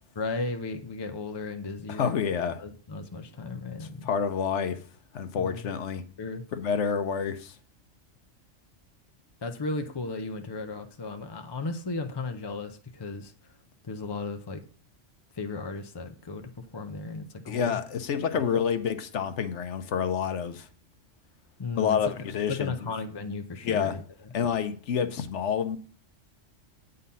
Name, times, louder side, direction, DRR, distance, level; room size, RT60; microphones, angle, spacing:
voice 1, 0.2-2.2 2.6-4.1 5.3-5.7 6.2-6.4 9.4-13.3 13.9-14.6 15.3-17.8 18.3-18.6 21.6-22.0 22.5-24.0, left 3 dB, 40° left, 0.3 m, -35 dB
voice 2, 1.9-2.6 3.8-4.8 5.1-6.0 6.5-7.5 17.5-20.7 21.8-22.7 23.6-24.0 24.3-25.8, left 7 dB, 70° left, 1.0 m, -28 dB
8.6 x 4.0 x 5.4 m
omnidirectional pair, 1.3 m